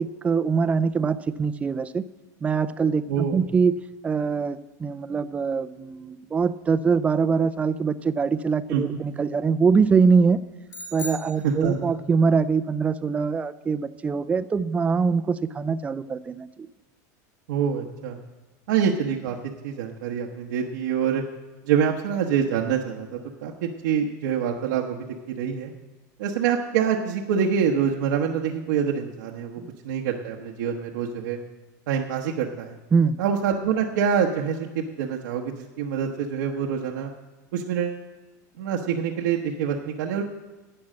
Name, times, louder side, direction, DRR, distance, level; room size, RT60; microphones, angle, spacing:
voice 1, 0.0-2.0 2.4-3.7 4.0-10.4 10.9-16.5 29.6-29.7 32.9-33.2, right 5 dB, 15° right, 15 dB, 0.4 m, -23 dB
voice 2, 3.1-3.4 8.7-9.0 11.4-11.9 17.5-18.2 18.7-19.4 19.6-21.2 21.6-25.0 25.4-25.7 26.2-31.4 31.9-32.8 33.2-37.1 37.5-38.0 38.6-40.2, right 7 dB, 85° right, -1 dB, 1.1 m, -26 dB
sound 1, 10.7-12.2, left 1 dB, 30° left, 2.2 m, -39 dB
11.5 x 8.7 x 7.5 m, 1.2 s
supercardioid pair, 150°, 10 cm